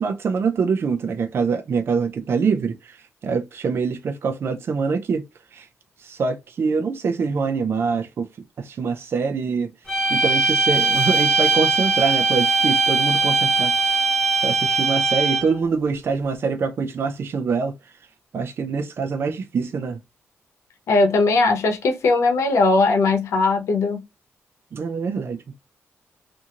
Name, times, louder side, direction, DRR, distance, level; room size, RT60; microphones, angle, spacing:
voice 1, 0.0-3.0 3.2-5.2 5.5-5.7 6.0-8.3 8.6-9.7 10.1-14.1 14.4-17.7 18.3-20.0 24.7-25.4, right 5 dB, 55° right, 0.5 m, -24 dB
sound 1, 9.9-15.6, right 3 dB, 10° left, 0.9 m, -20 dB
voice 2, 20.9-24.0, left 3 dB, 85° left, 0.8 m, -19 dB
2.8 x 2.6 x 2.4 m
cardioid pair, 105°, 5 cm